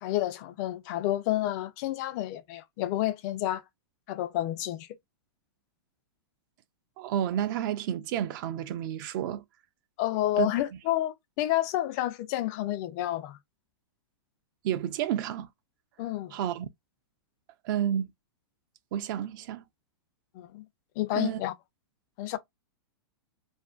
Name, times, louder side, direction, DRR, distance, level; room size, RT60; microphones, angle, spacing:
voice 1, 0.0-3.6 4.1-4.9 10.0-13.4 16.0-16.3 20.3-20.6 21.0-21.5 22.2-22.4, left 14 dB, 40° left, 0.4 m, -30 dB
voice 2, 7.0-9.4 10.4-10.5 14.6-15.5 16.3-16.7 17.6-18.1 18.9-19.6 21.1-21.4, right 10 dB, 50° right, 0.4 m, -30 dB
2.5 x 2.1 x 2.3 m
hypercardioid pair, 135°, 14 cm